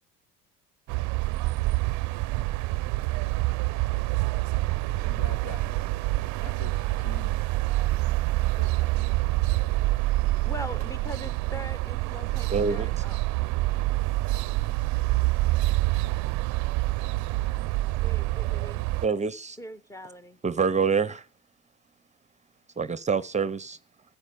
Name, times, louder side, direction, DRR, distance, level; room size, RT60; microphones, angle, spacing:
sound 1, 0.9-19.1, right 19 dB, 60° right, 0.5 m, -26 dB
voice 1, 4.9-5.8 6.4-7.4 7.9-8.1 8.5-9.4 15.5-15.6, left 5 dB, 65° left, 2.2 m, -46 dB
voice 2, 10.1-13.2 18.0-18.8 19.6-20.4, equal, 10° left, 1.0 m, -41 dB
voice 3, 12.5-13.1 19.0-19.6 20.4-21.2 22.8-23.8, right 5 dB, 20° right, 0.7 m, -26 dB
12.0 x 9.1 x 7.0 m
supercardioid pair, 85°, 33 cm